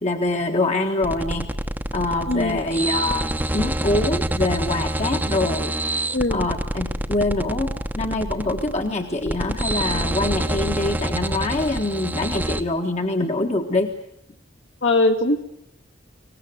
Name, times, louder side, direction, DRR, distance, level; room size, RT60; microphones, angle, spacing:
voice 1, 0.0-1.5 1.9-5.7 6.3-13.9, left 2 dB, 35° left, 3 dB, 1.5 m, -24 dB
sound 1, 1.0-12.6, right 1 dB, 10° right, 1.1 m, -26 dB
voice 2, 2.3-2.6 6.1-6.5 14.8-15.4, left 2 dB, 70° left, 5 dB, 2.6 m, -20 dB
24.0 x 19.0 x 9.5 m, 0.78 s
head